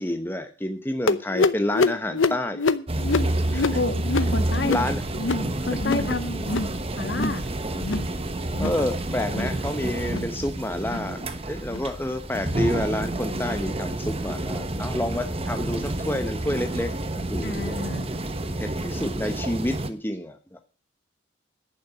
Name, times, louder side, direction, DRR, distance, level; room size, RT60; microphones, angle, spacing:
voice 1, 0.0-2.6 3.5-3.8 4.7-5.0 5.7-5.8 8.6-11.2 11.5-16.9 17.3-17.8 18.6-20.6, left 1 dB, 10° left, 6 dB, 0.9 m, -29 dB
sound 1, 1.1-6.1 6.4-6.8 7.0-7.4 7.7-8.1 8.5-8.8 9.2-9.6 10.0-10.3 10.8-11.1 11.7-11.9 12.5-12.7 13.4-13.5 14.2-14.3, left 3 dB, 75° left, 0.8 m, -26 dB
sound 2, 2.9-19.9, right 1 dB, 30° right, 1.1 m, -29 dB
voice 2, 3.7-4.8 5.6-6.4 7.0-7.4 17.4-18.1, left 2 dB, 55° left, 10 dB, 1.5 m, -29 dB
11.0 x 8.7 x 6.8 m, 0.34 s
head